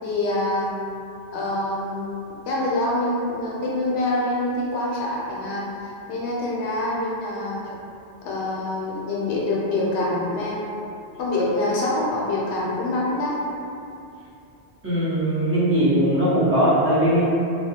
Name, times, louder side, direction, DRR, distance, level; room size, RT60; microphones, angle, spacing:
voice 1, 0.0-0.7 1.3-5.7 6.1-7.8 8.2-10.6 11.2-13.4, left 2 dB, 80° left, -5 dB, 0.8 m, -25 dB
voice 2, 14.8-17.2, right 1 dB, 15° right, -13 dB, 0.7 m, -20 dB
2.3 x 2.1 x 2.7 m, 2.6 s
omnidirectional pair, 1.1 m